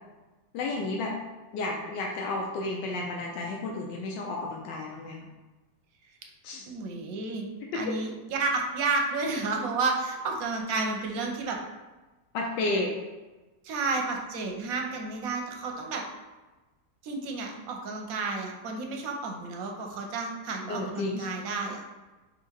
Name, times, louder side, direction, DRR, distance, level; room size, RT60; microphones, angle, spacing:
voice 1, 0.5-1.1 1.5-5.3 6.4-6.7 7.7-7.9 12.3-12.9 20.7-21.3, left 2 dB, 90° left, -1 dB, 1.3 m, -32 dB
voice 2, 6.7-7.5 7.7-11.6 13.6-16.0 17.0-21.8, right 3 dB, 65° right, 2 dB, 0.9 m, -31 dB
3.7 x 2.7 x 4.4 m, 1.2 s
omnidirectional pair, 1.8 m